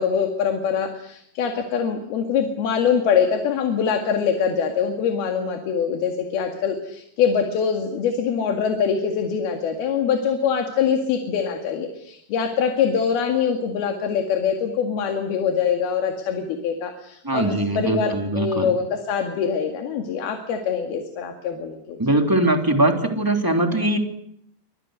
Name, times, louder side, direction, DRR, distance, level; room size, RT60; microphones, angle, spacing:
voice 1, 0.0-22.0, left 7 dB, 75° left, 4 dB, 3.9 m, -24 dB
voice 2, 17.2-18.7 22.0-24.0, right 1 dB, 5° right, 3 dB, 2.5 m, -21 dB
29.0 x 25.5 x 6.5 m, 0.72 s
omnidirectional pair, 4.6 m